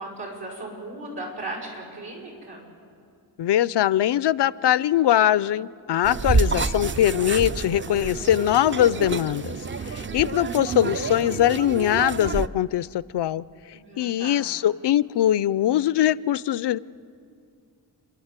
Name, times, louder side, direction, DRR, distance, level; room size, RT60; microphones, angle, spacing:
voice 1, 0.0-2.6 13.7-14.5, right 2 dB, 75° right, -3 dB, 5.9 m, -37 dB
voice 2, 3.4-9.6 9.9-13.4 14.0-16.8, left 12 dB, 80° left, 19 dB, 0.5 m, -22 dB
sound 1, 6.0-12.5, right 4 dB, 30° right, 0.5 m, -28 dB
30.0 x 11.5 x 8.1 m, 2.4 s
wide cardioid pair, 90°, 40 cm